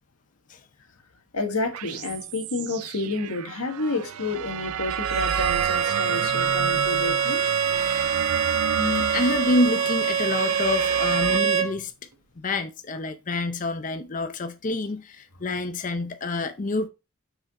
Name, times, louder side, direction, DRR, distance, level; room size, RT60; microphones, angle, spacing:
voice 1, 1.3-7.4, left 3 dB, 85° left, 1.5 m, -30 dB
sound 1, 1.7-11.4, right 8 dB, 85° right, 0.4 m, -31 dB
Bowed string instrument, 4.9-11.7, right 7 dB, 70° right, 1.1 m, -25 dB
voice 2, 8.8-11.9 12.4-16.9, left 2 dB, 35° left, 0.5 m, -27 dB
6.2 x 4.9 x 4.1 m
head